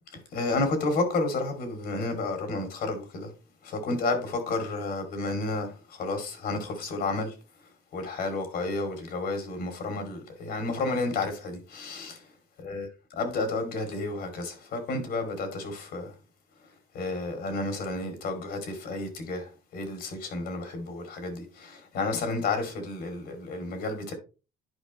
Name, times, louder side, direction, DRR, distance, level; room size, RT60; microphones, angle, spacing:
voice 1, 0.3-3.3 3.6-7.3 7.9-12.3 12.6-12.9 13.1-16.1 16.9-24.1, left 3 dB, 70° left, 2.6 m, -31 dB
11.0 x 4.9 x 3.1 m
cardioid pair, 110°, 17 cm